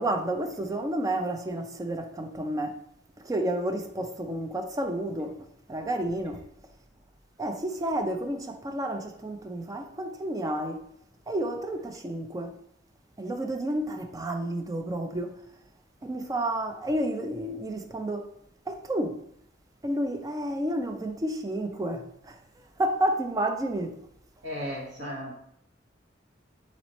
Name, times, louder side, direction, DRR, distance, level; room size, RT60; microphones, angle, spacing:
voice 1, 0.0-2.8 3.2-6.5 7.4-10.9 11.3-12.6 13.2-15.4 16.0-18.3 18.7-19.2 19.8-22.4 22.8-24.0, right 1 dB, 20° right, 0.4 m, -30 dB
voice 2, 24.4-25.5, equal, 70° right, 1.5 m, -35 dB
4.1 x 3.1 x 4.0 m
head